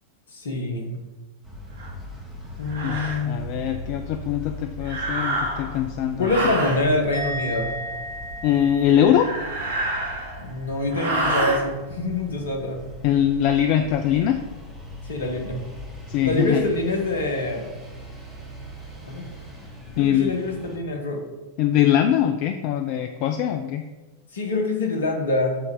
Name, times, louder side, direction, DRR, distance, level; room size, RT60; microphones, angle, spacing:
voice 1, 0.3-1.0 2.6-3.4 6.2-7.7 10.4-12.8 15.1-15.6 16.2-17.7 19.0-19.2 19.9-21.2 24.3-25.6, left 2 dB, 65° left, 2 dB, 1.5 m, -25 dB
sound 1, 1.4-20.8, left 1 dB, ahead, 2.4 m, -40 dB
sound 2, 1.8-1.9 2.7-3.2 4.8-5.8 6.2-6.8 9.0-10.5 10.9-11.6, right 1 dB, 65° right, 1.6 m, -27 dB
voice 2, 3.3-6.3 8.4-9.3 13.0-14.4 16.1-16.6 20.0-20.3 21.6-23.9, left 10 dB, 45° left, 7 dB, 0.4 m, -22 dB
Musical instrument, 7.1-10.5 10.8-11.2, equal, 85° left, 2.5 m, -35 dB
8.1 x 4.1 x 5.1 m, 1.2 s
figure-of-eight pair, 90°, 0 cm